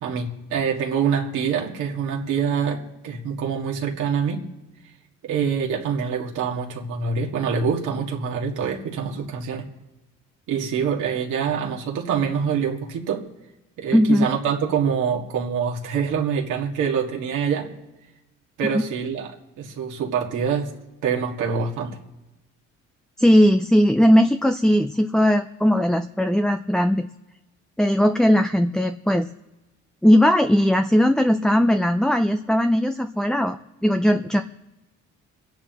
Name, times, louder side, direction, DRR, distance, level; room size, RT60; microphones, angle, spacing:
voice 1, 0.0-4.4 5.2-9.7 10.5-13.3 13.8-17.7 18.6-20.7 21.0-22.0, right 6 dB, 90° right, -1 dB, 2.0 m, -25 dB
voice 2, 13.9-14.3 18.7-18.8 23.2-27.1 27.8-29.3 30.0-34.4, equal, ahead, 7 dB, 0.5 m, -18 dB
27.5 x 10.0 x 3.0 m, 1.0 s
cardioid pair, 90°, 30 cm